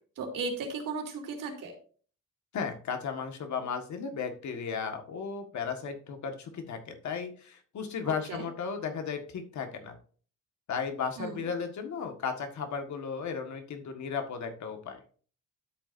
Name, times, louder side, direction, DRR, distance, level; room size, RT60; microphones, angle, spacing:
voice 1, 0.2-1.7 8.0-8.4 11.2-11.4, right 4 dB, 85° right, 1 dB, 3.2 m, -36 dB
voice 2, 2.5-10.0 10.7-15.0, left 6 dB, 60° left, 5 dB, 1.7 m, -35 dB
12.5 x 8.1 x 2.6 m, 0.42 s
wide cardioid pair, 170°, 32 cm